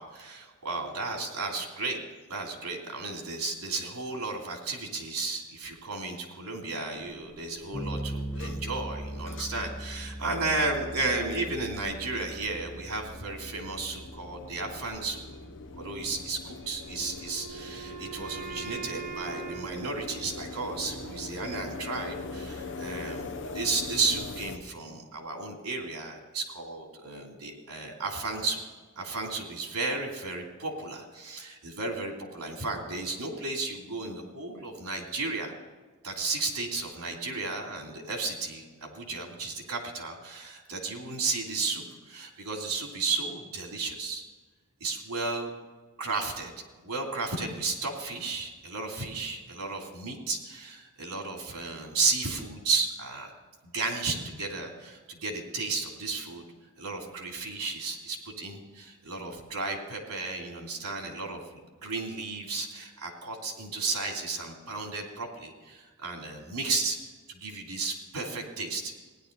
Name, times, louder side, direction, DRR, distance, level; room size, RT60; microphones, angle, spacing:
voice 1, 0.0-2.0 2.3-15.2 15.8-28.6 29.0-35.5 36.0-44.2 44.8-45.5 46.0-46.5 46.8-53.3 53.6-56.4 56.8-61.4 61.8-67.0 67.3-68.9, right 3 dB, 80° right, 1 dB, 3.0 m, -33 dB
sound 1, 7.0-24.6, left 3 dB, 55° left, 0.8 m, -43 dB
Bass guitar, 7.7-17.4, right 1 dB, 5° left, 1.3 m, -41 dB
Wind instrument woodwind instrument, 17.0-21.0, right 7 dB, 45° right, 2.7 m, -42 dB
16.5 x 10.5 x 4.0 m, 1.4 s
head